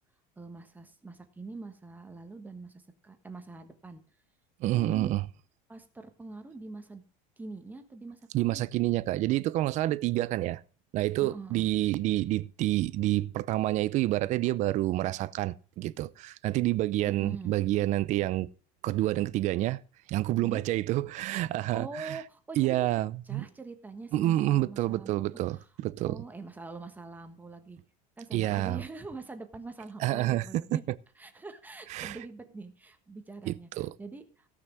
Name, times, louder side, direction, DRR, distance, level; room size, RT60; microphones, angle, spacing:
voice 1, 0.4-4.0 4.7-5.1 5.7-7.0 7.4-8.7 11.2-11.7 17.0-17.6 20.4-20.6 21.7-22.8 23.2-25.3 25.5-25.7 26.0-27.8 28.2-30.8 31.2-33.7 34.0-34.5, right 3 dB, 10° right, 1.3 m, -44 dB
voice 2, 4.6-5.2 8.3-10.6 10.9-18.5 18.8-19.8 20.1-22.2 22.6-23.5 24.1-26.2 28.3-28.8 30.0-30.8 31.9-32.2 33.5-33.9, right 16 dB, 45° right, 0.6 m, -28 dB
17.0 x 6.0 x 6.1 m
cardioid pair, 150°, 17 cm